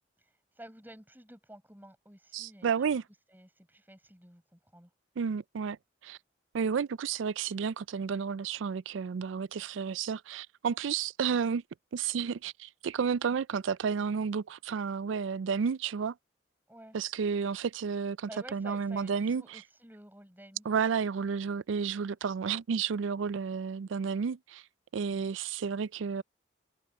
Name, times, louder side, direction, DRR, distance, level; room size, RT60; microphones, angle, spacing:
voice 1, 0.2-2.9 3.3-4.9 16.7-17.0 18.3-20.7, right 1 dB, 10° right, 7.9 m, -52 dB
voice 2, 2.3-3.0 5.2-5.8 6.0-6.2 6.5-11.6 11.9-16.1 16.9-19.6 20.7-24.6 24.9-26.2, right 6 dB, 75° right, 0.4 m, -31 dB
head